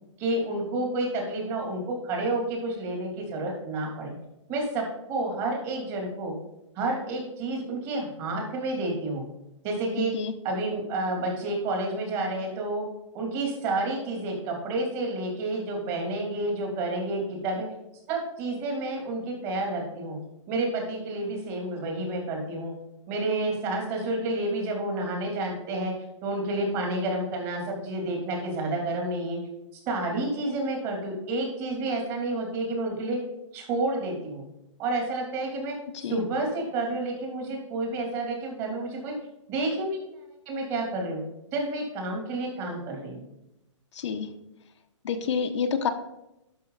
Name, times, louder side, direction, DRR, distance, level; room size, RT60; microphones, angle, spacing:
voice 1, 0.2-4.1 4.5-6.3 6.7-9.2 9.6-10.1 10.4-12.9 13.1-17.7 18.1-20.2 20.5-22.7 23.1-25.9 26.2-29.4 29.9-33.2 33.5-34.5 34.8-35.8 36.1-39.1 39.5-40.1 40.5-41.2 41.5-43.2, right 2 dB, 30° right, 1 dB, 3.0 m, -30 dB
voice 2, 43.9-44.3 45.0-45.9, left 6 dB, 65° left, 5 dB, 1.1 m, -28 dB
11.0 x 6.2 x 4.1 m, 0.90 s
hypercardioid pair, 155°, 16 cm